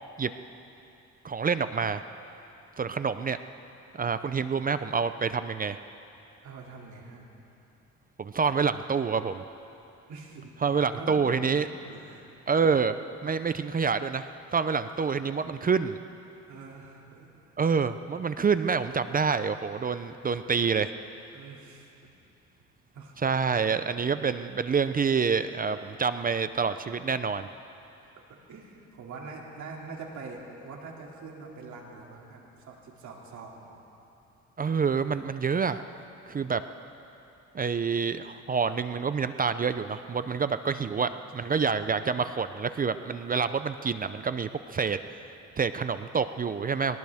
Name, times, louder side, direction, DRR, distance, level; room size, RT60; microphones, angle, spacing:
voice 1, 1.2-2.0 2.8-3.4 3.9-5.8 8.2-9.4 10.6-11.7 12.5-13.0 13.2-16.0 17.6-20.9 23.2-27.5 34.6-35.8 36.3-36.6 37.5-47.0, right 5 dB, 30° right, 11 dB, 0.5 m, -27 dB
voice 2, 6.4-7.3 10.1-10.6 10.9-11.2 11.6-12.3 13.6-13.7 14.8-15.1 16.5-17.6 21.3-21.9 22.9-23.4 28.5-33.6 40.7-41.1 41.4-41.7, right 4 dB, 70° right, -1 dB, 2.7 m, -44 dB
22.0 x 18.0 x 3.6 m, 2.8 s
cardioid pair, 90°, 30 cm